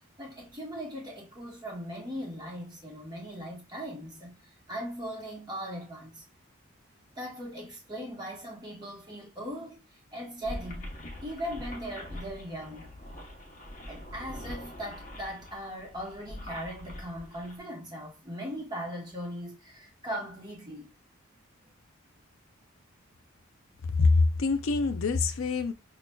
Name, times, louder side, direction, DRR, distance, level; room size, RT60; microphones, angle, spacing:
voice 1, 0.2-6.2 7.2-9.8 10.1-12.9 13.9-20.9, equal, 20° right, 1.0 m, -39 dB
sound 1, 10.4-17.6, left 1 dB, 35° left, 0.8 m, -43 dB
voice 2, 24.0-25.7, left 3 dB, 70° left, 0.4 m, -24 dB
5.6 x 2.2 x 2.2 m
head